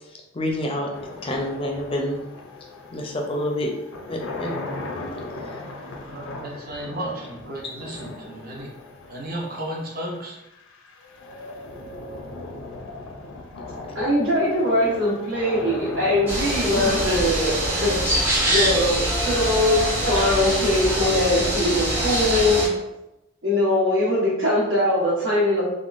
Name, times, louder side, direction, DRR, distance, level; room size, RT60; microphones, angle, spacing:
voice 1, 0.3-0.9 1.2-2.2 2.9-3.7 4.1-4.5 16.8-16.9 20.1-20.3, left 1 dB, 25° left, 1 dB, 0.4 m, -27 dB
sound 1, 0.9-20.0, left 2 dB, 85° left, 0.5 m, -38 dB
voice 2, 6.0-8.7 9.1-10.4, right 1 dB, 45° right, -2 dB, 0.6 m, -33 dB
voice 3, 13.9-19.0 19.2-22.7 23.4-25.6, left 1 dB, 85° right, -12 dB, 1.2 m, -22 dB
sound 2, 16.3-22.7, right 1 dB, 10° right, 0.7 m, -24 dB
3.5 x 2.2 x 2.5 m, 0.92 s
head